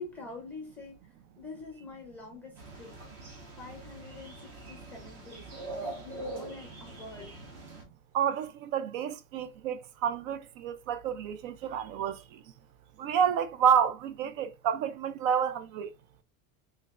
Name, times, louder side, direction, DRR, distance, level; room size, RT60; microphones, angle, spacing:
voice 1, 0.0-3.2 3.6-7.4, left 3 dB, 5° left, 0.5 m, -46 dB
sound 1, 2.6-7.8, right 2 dB, 45° right, 1.2 m, -43 dB
voice 2, 8.1-12.4 13.0-15.9, right 8 dB, 75° right, 0.5 m, -29 dB
3.3 x 3.2 x 2.3 m
cardioid pair, 175°, 41 cm